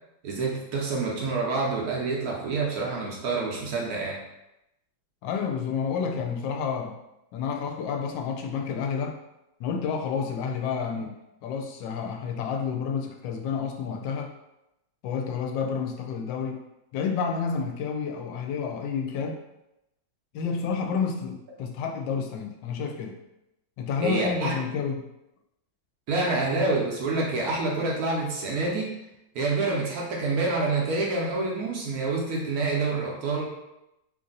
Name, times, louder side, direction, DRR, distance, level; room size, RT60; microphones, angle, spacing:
voice 1, 0.2-4.2 24.0-24.5 26.1-28.9 29.3-33.5, right 3 dB, 65° right, -2 dB, 1.0 m, -27 dB
voice 2, 5.2-7.0 7.3-9.2 9.6-11.1 11.4-14.3 15.0-16.6 16.9-19.4 20.3-23.2 23.8-25.1, left 6 dB, 75° left, 3 dB, 1.2 m, -30 dB
3.2 x 2.6 x 3.8 m, 0.88 s
omnidirectional pair, 2.2 m